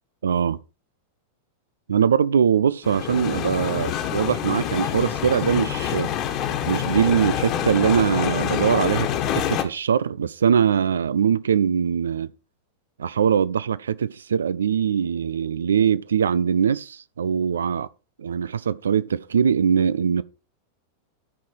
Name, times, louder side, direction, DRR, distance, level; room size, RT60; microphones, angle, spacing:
voice 1, 0.2-0.6 1.9-6.1 6.7-12.3 13.0-17.9 18.2-20.2, right 7 dB, 70° right, 0.5 m, -22 dB
sound 1, 2.8-9.6, left 10 dB, 40° left, 1.6 m, -26 dB
13.5 x 5.6 x 4.8 m
figure-of-eight pair, 90°, 0 cm